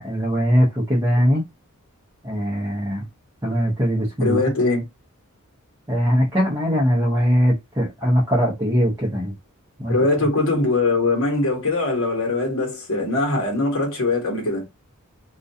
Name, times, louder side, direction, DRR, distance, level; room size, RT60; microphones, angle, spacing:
voice 1, 0.0-1.4 2.2-3.0 3.4-4.4 5.9-9.3 9.8-9.9, equal, 15° right, 0.6 m, -20 dB
voice 2, 4.2-4.8 9.9-14.7, left 2 dB, 65° left, 1.0 m, -21 dB
2.4 x 2.2 x 2.6 m
head